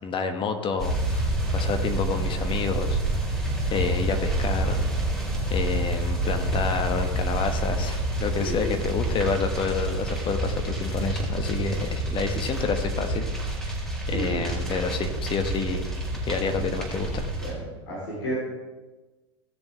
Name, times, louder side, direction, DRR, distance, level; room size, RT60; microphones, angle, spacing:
voice 1, 0.0-3.0 3.7-4.8 5.5-13.3 13.7-13.8 14.1-15.9 16.2-17.3, left 5 dB, 35° left, 6 dB, 1.3 m, -29 dB
sound 1, 0.8-17.5, right 1 dB, 5° left, 4.0 m, -28 dB
voice 2, 8.4-8.8 14.1-14.5 17.4-18.3, equal, 65° left, -5 dB, 3.6 m, -32 dB
17.0 x 7.1 x 3.4 m, 1.2 s
figure-of-eight pair, 85°, 15 cm